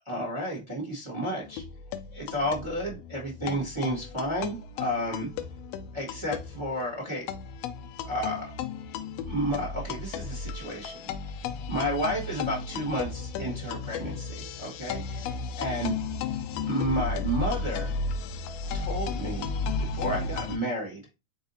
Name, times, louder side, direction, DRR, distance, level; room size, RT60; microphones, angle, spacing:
voice 1, 0.1-1.6 2.1-5.3 5.9-7.3 8.0-8.6 9.3-11.0 11.7-15.9 16.7-17.9 18.7-19.5 19.8-21.0, equal, 40° right, -2 dB, 0.4 m, -31 dB
sound 1, 1.4-20.6, left 4 dB, 85° left, 1.4 m, -34 dB
4.7 x 3.9 x 2.7 m, 0.27 s
omnidirectional pair, 3.3 m